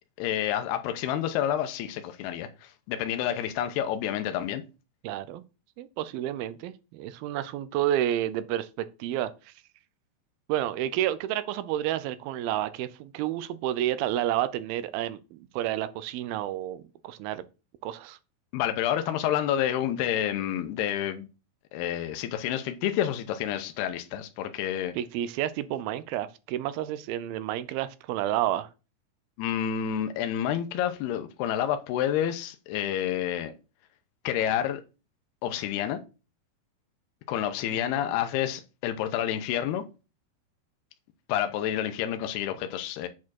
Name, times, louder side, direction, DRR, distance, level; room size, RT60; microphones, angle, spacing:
voice 1, 0.2-4.6 18.5-21.3 21.7-24.9 29.4-33.5 34.2-34.8 35.4-36.0 37.3-39.8 41.3-43.1, left 10 dB, 85° left, 2.8 m, -29 dB
voice 2, 5.0-5.4 5.8-9.5 10.5-17.5 17.8-18.2 25.0-28.7, right 12 dB, 80° right, 2.3 m, -30 dB
8.4 x 4.5 x 6.2 m
omnidirectional pair, 4.6 m